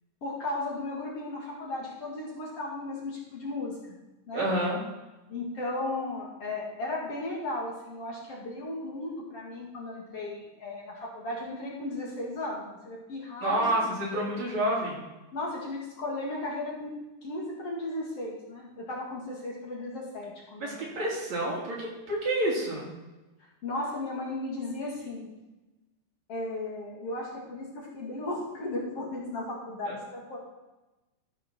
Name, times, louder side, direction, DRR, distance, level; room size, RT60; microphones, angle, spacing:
voice 1, 0.2-3.8 4.3-4.5 5.3-13.7 14.1-14.2 15.3-16.9 17.2-20.8 23.4-25.3 26.3-30.4, left 2 dB, 50° left, -4 dB, 3.0 m, -35 dB
voice 2, 4.3-4.8 13.4-15.0 20.6-22.9 29.9-30.0, right 1 dB, 55° right, -5 dB, 4.5 m, -29 dB
13.5 x 5.9 x 6.2 m, 1.1 s
omnidirectional pair, 3.8 m